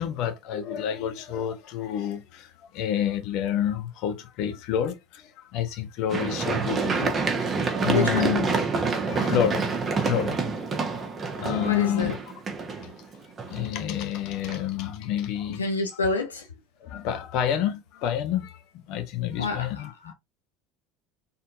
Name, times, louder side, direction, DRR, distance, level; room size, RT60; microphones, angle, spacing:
voice 1, 0.0-7.5 7.8-8.5 8.9-10.4 10.7-11.0 11.3-12.2 12.7-12.9 13.4-15.6 16.8-20.1, left 10 dB, 55° left, 1.0 m, -29 dB
Run, 6.1-14.0 14.5-14.6, right 4 dB, 30° right, 1.3 m, -27 dB
voice 2, 7.9-8.3 11.6-12.2 15.6-16.5 19.4-20.1, left 3 dB, 85° left, 0.8 m, -28 dB
4.3 x 3.7 x 2.7 m
figure-of-eight pair, 70°, 0 cm